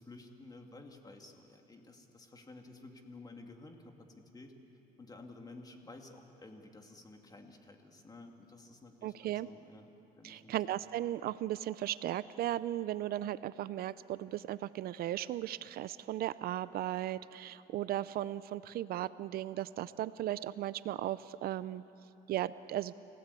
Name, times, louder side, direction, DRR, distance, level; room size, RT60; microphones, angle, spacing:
voice 1, 0.0-4.5 5.0-9.9 10.2-10.6, left 2 dB, 20° left, 4 dB, 2.4 m, -53 dB
voice 2, 9.0-9.5 10.2-21.8 22.3-22.9, right 13 dB, 65° right, 16 dB, 0.5 m, -36 dB
28.5 x 16.5 x 8.3 m, 2.9 s
cardioid pair, 110°, 17 cm